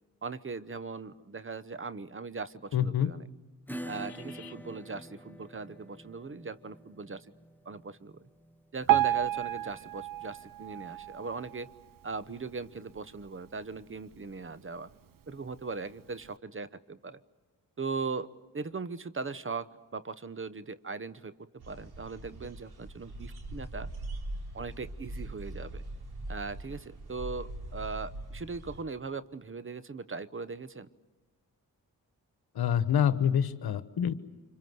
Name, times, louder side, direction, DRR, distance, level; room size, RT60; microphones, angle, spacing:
voice 1, 0.2-3.3 3.9-7.3 7.6-8.3 8.7-11.7 12.0-14.9 15.3-17.2 17.8-23.9 24.5-25.8 26.3-30.9, right 4 dB, 35° right, 15 dB, 1.0 m, -39 dB
voice 2, 2.7-3.1 4.4-4.5 32.5-34.1, left 9 dB, 80° left, 13 dB, 1.2 m, -26 dB
Acoustic guitar / Strum, 3.7-10.9, right 1 dB, 5° left, 1.2 m, -47 dB
Piano, 8.9-12.0 12.5-12.7 13.0-13.1 13.8-13.9 14.4-14.5, right 13 dB, 60° right, 0.8 m, -30 dB
sound 1, 21.6-28.8, right 1 dB, 80° right, 4.1 m, -41 dB
26.0 x 24.5 x 7.9 m, 1.2 s
cardioid pair, 60°, 37 cm